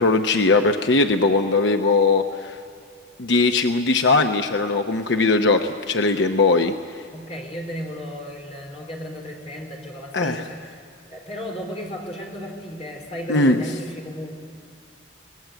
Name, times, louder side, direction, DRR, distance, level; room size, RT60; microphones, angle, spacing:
voice 1, 0.0-2.6 3.2-6.7 10.1-10.4 13.3-13.6, left 3 dB, 80° left, 6 dB, 0.9 m, -19 dB
voice 2, 7.1-10.8 11.1-14.4, equal, 35° left, 0 dB, 4.1 m, -34 dB
24.0 x 18.5 x 8.1 m, 2.5 s
head